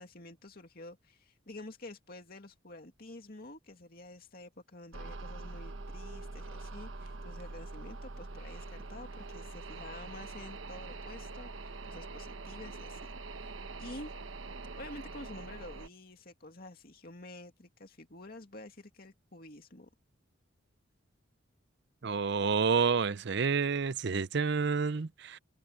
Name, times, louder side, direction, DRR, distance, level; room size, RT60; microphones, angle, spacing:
voice 1, 0.0-13.1 13.4-13.5 13.8-14.1 14.7-19.9, left 2 dB, 50° left, 2.4 m, -49 dB
sound 1, 4.9-15.9, right 3 dB, 75° right, 1.1 m, -44 dB
voice 2, 22.0-25.4, right 5 dB, 55° right, 0.6 m, -29 dB
head